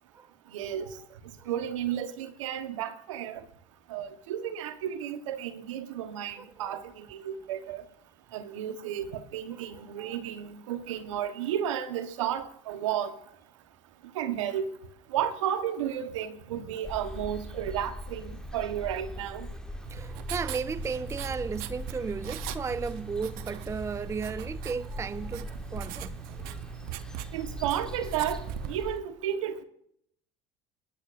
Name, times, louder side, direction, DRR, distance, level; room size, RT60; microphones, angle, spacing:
voice 1, 0.5-1.0 1.4-3.4 3.9-7.8 8.3-13.1 14.1-14.7 15.1-19.5 27.3-28.4 28.7-29.6, right 10 dB, 85° right, 1.3 m, -33 dB
voice 2, 6.4-6.8 9.5-10.2 19.9-26.2, right 5 dB, 20° right, 0.4 m, -35 dB
sound 1, 16.8-29.0, left 1 dB, 5° left, 1.3 m, -41 dB
Writing, 19.8-28.8, right 13 dB, 65° right, 0.8 m, -41 dB
21.5 x 10.5 x 2.6 m
hypercardioid pair, 75°, 16 cm